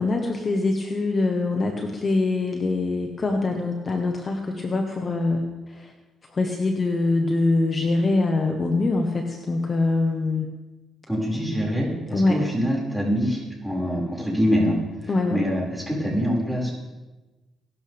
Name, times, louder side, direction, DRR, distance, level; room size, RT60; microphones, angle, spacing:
voice 1, 0.0-5.9 6.3-10.5 12.1-12.5 15.1-15.4, left 3 dB, 35° left, 3 dB, 1.5 m, -24 dB
voice 2, 11.1-14.8 15.0-16.7, equal, ahead, -4 dB, 5.9 m, -25 dB
21.5 x 12.0 x 3.6 m, 1.1 s
cardioid pair, 90°, 0 cm